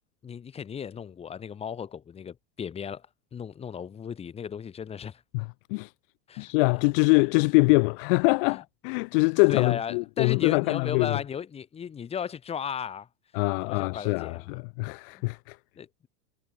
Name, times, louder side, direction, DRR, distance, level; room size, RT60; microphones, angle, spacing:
voice 1, 0.2-5.2 6.3-6.5 8.5-8.6 9.1-13.1 13.6-14.6 15.1-15.2 15.8-16.1, left 7 dB, 15° left, 2.5 m, -36 dB
voice 2, 5.3-5.9 6.4-11.2 13.3-15.6, left 31 dB, 35° left, 1.1 m, -24 dB
supercardioid pair, 175°, 45 cm